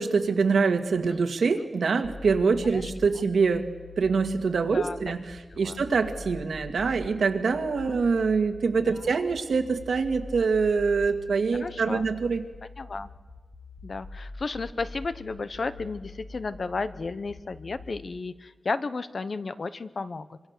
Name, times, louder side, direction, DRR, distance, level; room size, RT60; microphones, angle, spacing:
voice 1, 0.0-3.7 4.0-12.4, right 5 dB, 80° right, 6 dB, 1.9 m, -25 dB
sound 1, 2.0-18.0, left 2 dB, 25° left, 1.5 m, -44 dB
voice 2, 4.6-5.0 5.6-5.8 8.8-8.9 11.5-12.0 12.8-13.1 13.8-20.4, left 3 dB, 45° left, 13 dB, 0.9 m, -33 dB
25.5 x 25.0 x 6.7 m, 1.4 s
wide cardioid pair, 165°, 0 cm